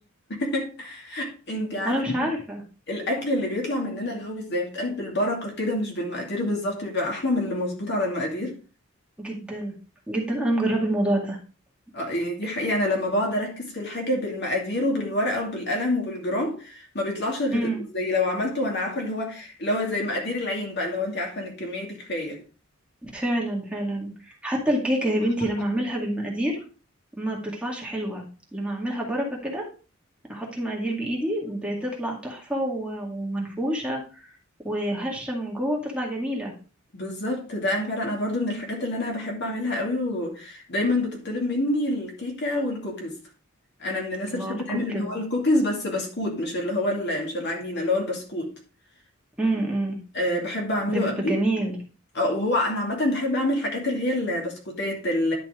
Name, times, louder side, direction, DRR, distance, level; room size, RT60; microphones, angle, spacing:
voice 1, 0.3-2.3 2.9-8.6 11.9-22.4 36.9-43.2 43.8-48.5 50.1-51.4 52.1-55.3, left 1 dB, 55° left, 2.6 m, -27 dB
voice 2, 1.8-2.6 9.2-9.8 10.1-11.4 17.5-17.8 23.0-24.1 24.4-26.6 27.2-28.2 28.5-29.7 30.3-34.3 34.6-36.5 44.3-44.6 44.9-45.1 49.4-50.0 50.9-51.8, right 1 dB, 5° right, 2.1 m, -27 dB
11.0 x 5.9 x 3.7 m
head